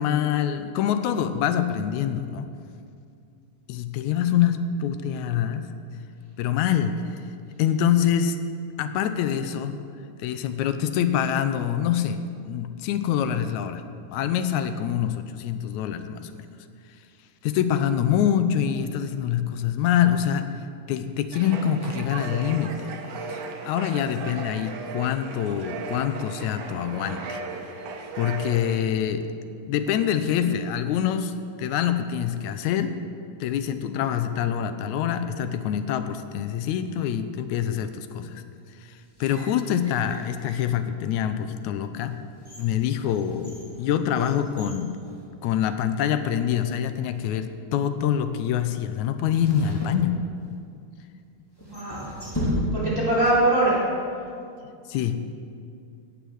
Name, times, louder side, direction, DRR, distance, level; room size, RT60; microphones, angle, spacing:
voice 1, 0.0-2.5 3.7-5.7 6.4-7.0 7.6-8.4 8.8-9.8 10.2-12.2 12.5-13.8 14.1-16.3 17.4-20.4 20.9-22.7 23.3-27.4 28.2-29.2 29.7-33.0 33.4-38.4 39.2-42.2 42.6-44.9 45.4-50.2 54.9-55.2, left 9 dB, 80° left, 9 dB, 1.9 m, -25 dB
sound 1, 21.3-28.8, right 4 dB, 70° right, 2.4 m, -36 dB
sound 2, 39.0-40.8 41.4-41.5 42.1-45.8 46.1-46.2 47.0-47.4 49.4-50.7 51.6-53.1 53.4-53.5, equal, 10° left, 2.3 m, -35 dB
voice 2, 51.6-52.1 52.7-53.8, right 1 dB, 10° right, -9 dB, 3.2 m, -22 dB
16.5 x 7.0 x 6.2 m, 2.4 s
omnidirectional pair, 3.6 m